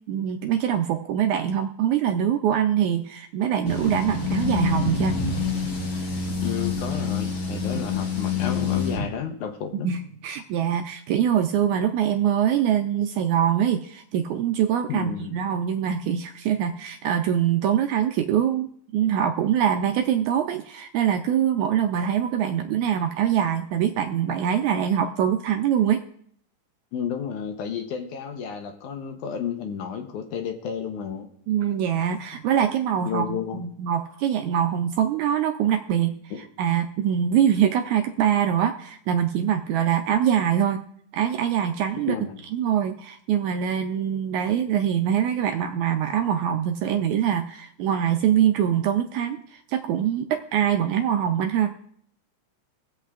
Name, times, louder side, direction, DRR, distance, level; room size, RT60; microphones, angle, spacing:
voice 1, 0.1-5.1 7.7-7.8 9.8-18.7 18.9-26.0 31.5-36.1 36.6-40.8 41.1-42.2 42.5-51.7, right 9 dB, 80° right, 5 dB, 1.8 m, -23 dB
sound 1, 3.7-9.0, left 5 dB, 50° left, 2.5 m, -26 dB
voice 2, 6.4-9.9 14.9-15.4 26.9-31.3 33.0-33.6 36.3-36.4 42.1-42.4, left 7 dB, 70° left, 5 dB, 2.2 m, -32 dB
23.5 x 7.9 x 2.4 m, 0.65 s
omnidirectional pair, 3.8 m